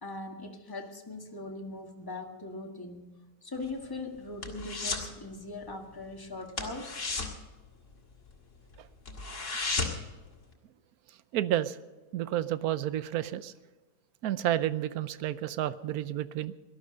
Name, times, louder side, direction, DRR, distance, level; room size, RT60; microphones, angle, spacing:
voice 1, 0.0-3.1 3.4-7.0, left 2 dB, 15° left, 2 dB, 1.6 m, -40 dB
sound 1, 3.5-5.1 5.4-5.7 6.0-6.1 6.5-8.4 8.7-8.8 9.1-10.2 10.5-10.6, left 3 dB, 45° left, 2.4 m, -34 dB
voice 2, 11.3-11.8 12.1-13.5 14.2-16.5, right 12 dB, 65° right, 15 dB, 1.0 m, -30 dB
18.5 x 12.5 x 5.2 m, 1.3 s
omnidirectional pair, 1.9 m